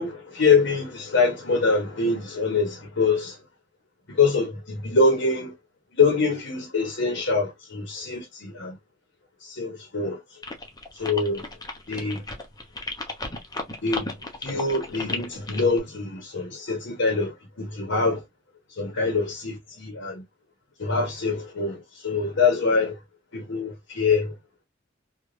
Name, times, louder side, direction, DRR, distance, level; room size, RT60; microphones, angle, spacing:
voice 1, 0.0-3.4 4.1-5.5 5.9-8.7 9.4-10.4 10.9-11.5 11.9-12.2 13.8-18.2 18.8-20.2 20.8-23.0 23.3-24.4, left 4 dB, 65° left, 0.8 m, -24 dB
sound 1, 10.4-15.8, left 2 dB, 20° left, 0.7 m, -34 dB
3.1 x 2.3 x 2.5 m
head